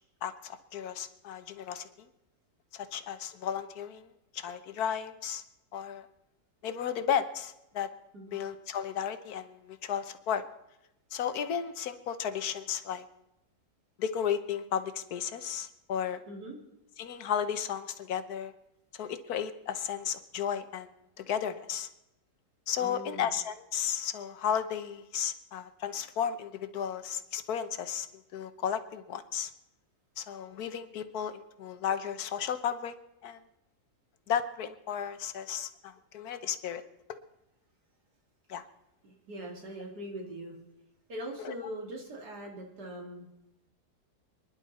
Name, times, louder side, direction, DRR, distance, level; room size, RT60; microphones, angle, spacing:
voice 1, 0.2-2.1 2.7-4.1 4.3-5.4 5.7-6.0 6.6-7.9 8.3-10.4 11.1-13.0 14.0-16.2 17.0-18.5 18.9-20.9 21.2-21.9 22.7-29.5 30.2-32.9 33.2-33.4 34.3-36.8 38.5-38.6 41.4-41.5, left 8 dB, 65° left, 11 dB, 1.4 m, -34 dB
voice 2, 16.3-16.6 22.8-23.3 39.0-40.6 41.1-43.3, right 1 dB, 70° right, 1 dB, 3.1 m, -41 dB
27.0 x 11.0 x 4.2 m, 0.91 s
omnidirectional pair, 1.8 m